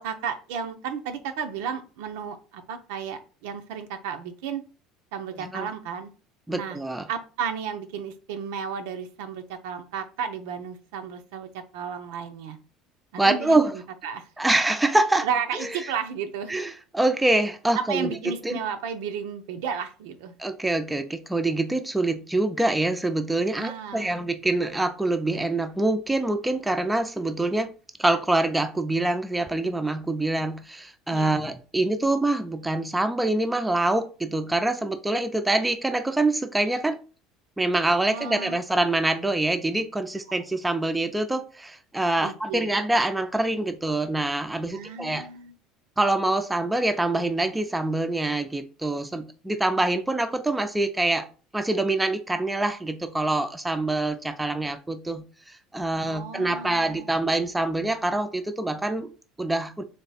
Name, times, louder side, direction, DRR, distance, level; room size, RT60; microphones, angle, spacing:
voice 1, 0.0-4.6 5.1-6.1 6.5-6.8 7.1-12.6 13.1-14.3 15.2-16.5 17.8-20.3 23.6-24.1 31.1-31.4 38.1-38.6 42.2-42.7 44.7-45.5 56.0-57.2, right 7 dB, 85° right, 0.6 m, -33 dB
voice 2, 6.5-7.1 13.2-13.8 14.4-15.3 15.5-15.7 16.5-18.1 18.4-18.6 20.4-27.7 28.0-37.0 37.6-45.3 46.0-51.3 51.5-59.8, right 2 dB, 10° right, 0.4 m, -25 dB
3.4 x 3.2 x 4.1 m
cardioid pair, 125°, 0 cm